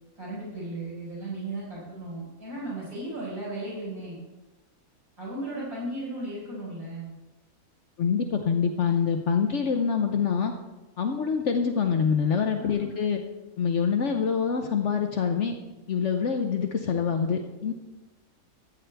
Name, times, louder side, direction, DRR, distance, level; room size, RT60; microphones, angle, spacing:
voice 1, 0.2-4.2 5.2-7.1 12.6-12.9, right 2 dB, 90° right, -7 dB, 5.0 m, -36 dB
voice 2, 8.0-10.5 11.0-13.2 13.6-15.6 15.9-17.7, left 6 dB, 60° left, 5 dB, 0.9 m, -25 dB
14.0 x 9.1 x 3.4 m, 1.1 s
omnidirectional pair, 1.5 m